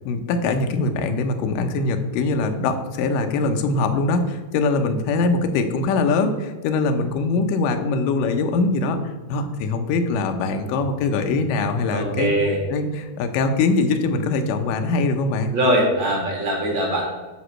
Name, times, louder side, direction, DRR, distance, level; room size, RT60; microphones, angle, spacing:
voice 1, 0.1-12.3 12.7-15.5, left 3 dB, 75° left, 6 dB, 2.3 m, -22 dB
voice 2, 11.9-12.6 15.5-17.1, right 1 dB, 40° right, -1 dB, 1.9 m, -21 dB
9.7 x 4.1 x 6.3 m, 1.2 s
omnidirectional pair, 4.3 m